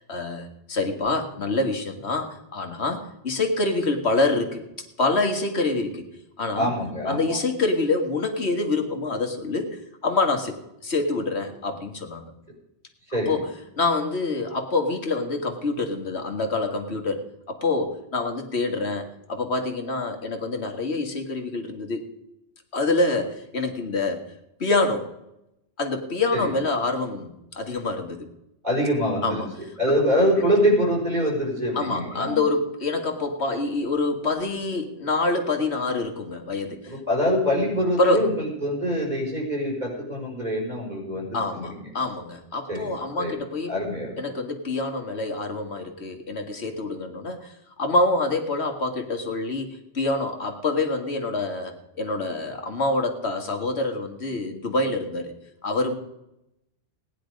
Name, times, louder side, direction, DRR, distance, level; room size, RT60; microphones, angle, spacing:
voice 1, 0.0-4.6 5.0-6.0 6.4-6.7 7.1-10.5 10.8-12.3 13.1-13.5 13.8-17.2 17.5-22.0 22.7-24.2 24.6-25.1 25.8-28.3 29.2-29.5 29.9-30.0 31.7-37.0 38.0-38.2 41.3-43.7 44.2-51.7 52.0-55.3 55.6-55.9, left 2 dB, 70° left, 4 dB, 2.0 m, -26 dB
voice 2, 6.5-7.4 13.1-13.3 26.3-26.5 28.6-29.4 29.8-32.4 36.9-41.9 42.7-43.3 43.7-44.2, equal, 40° right, -2 dB, 5.6 m, -24 dB
18.0 x 10.0 x 5.2 m, 0.85 s
omnidirectional pair, 1.1 m